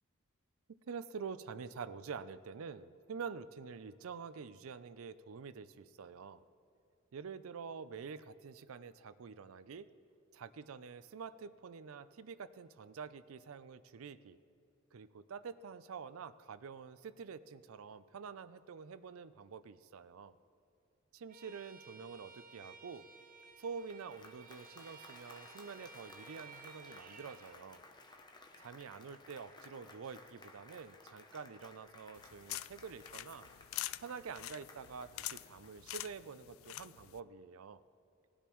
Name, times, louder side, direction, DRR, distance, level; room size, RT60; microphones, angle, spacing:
voice 1, 0.9-6.4 7.1-9.9 10.3-14.4 14.9-20.4 21.1-23.1 23.6-27.8 28.6-33.5 34.0-37.8, right 5 dB, 90° right, 15 dB, 0.5 m, -47 dB
Bowed string instrument, 21.3-27.6, right 5 dB, 40° right, 0.7 m, -56 dB
Applause, 23.6-36.2, left 2 dB, 20° left, 0.7 m, -58 dB
sound 1, 32.2-37.2, left 15 dB, 80° left, 0.3 m, -46 dB
19.0 x 10.0 x 3.1 m, 2.7 s
head